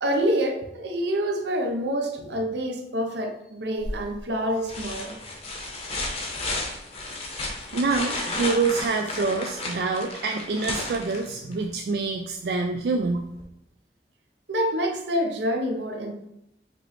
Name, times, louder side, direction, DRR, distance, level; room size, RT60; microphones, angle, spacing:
voice 1, 0.0-5.2 14.5-16.1, equal, 80° right, 3 dB, 0.8 m, -27 dB
sound 1, 3.8-4.2 4.7-11.6 13.4-13.5, left 2 dB, 35° left, 0.8 m, -33 dB
voice 2, 7.7-13.3, right 4 dB, 65° right, 4 dB, 0.3 m, -26 dB
5.1 x 3.1 x 3.1 m, 0.82 s
head